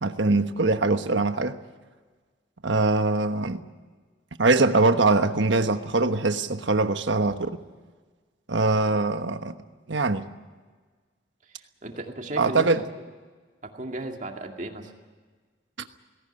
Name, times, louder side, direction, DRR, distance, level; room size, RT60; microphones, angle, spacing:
voice 1, 0.0-1.6 2.6-3.6 4.4-7.4 8.5-9.5 9.9-10.3 12.4-12.8, right 3 dB, 75° right, 1.2 m, -22 dB
voice 2, 11.4-12.8 13.6-14.9, right 1 dB, 40° right, 2.2 m, -36 dB
18.5 x 17.5 x 9.9 m
head